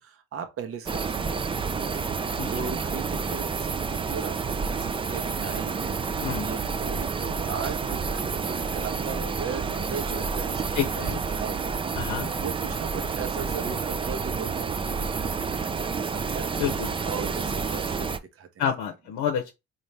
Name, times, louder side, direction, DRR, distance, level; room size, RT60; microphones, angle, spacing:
voice 1, 0.0-6.0 6.4-11.1 11.3-18.6, right 6 dB, 50° right, 0.8 m, -38 dB
sound 1, 0.9-18.2, right 5 dB, 20° right, 0.3 m, -29 dB
voice 2, 10.7-11.2 12.0-12.3 16.6-16.9 18.6-19.5, left 8 dB, 90° left, 0.7 m, -28 dB
4.1 x 2.5 x 3.2 m
cardioid pair, 90°, 30 cm